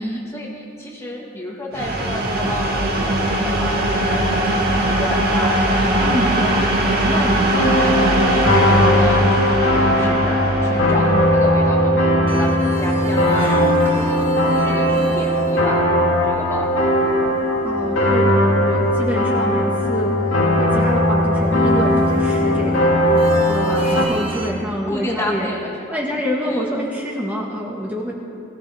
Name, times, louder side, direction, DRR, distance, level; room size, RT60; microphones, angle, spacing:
voice 1, 0.0-6.1 6.4-6.8 7.0-15.9 16.2-17.1 23.7-24.0 24.9-26.0 26.5-26.6, left 1 dB, 15° left, -3 dB, 1.7 m, -30 dB
sound 1, 1.7-13.4, right 1 dB, 50° right, 2.0 m, -21 dB
voice 2, 6.0-6.3 6.6-6.8 17.6-22.9 23.5-25.5 25.9-28.1, equal, 10° right, -3 dB, 1.7 m, -26 dB
sound 2, 7.5-24.0, left 1 dB, 90° left, 2.2 m, -18 dB
sound 3, 12.3-24.5, right 2 dB, 25° right, 1.5 m, -33 dB
22.0 x 16.0 x 3.6 m, 2.6 s
head